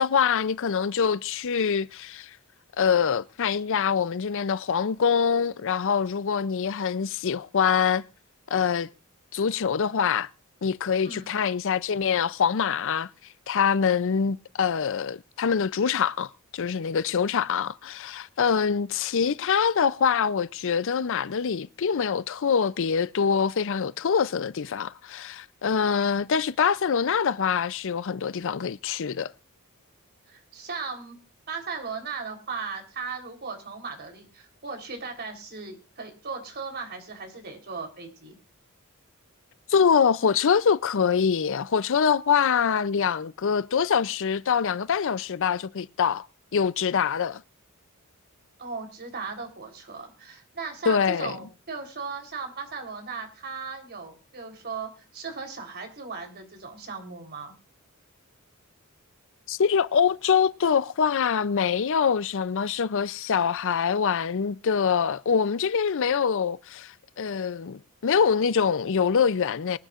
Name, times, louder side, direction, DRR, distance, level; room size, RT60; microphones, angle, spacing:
voice 1, 0.0-2.3 2.8-8.0 8.5-8.9 9.3-10.3 10.6-13.1 13.5-29.3 39.7-46.3 46.5-47.4 50.9-51.3 59.5-69.8, left 6 dB, 60° left, 0.5 m, -24 dB
voice 2, 30.3-31.2 31.5-38.4 48.6-57.5, right 4 dB, 50° right, 3.7 m, -37 dB
23.5 x 10.0 x 2.5 m
head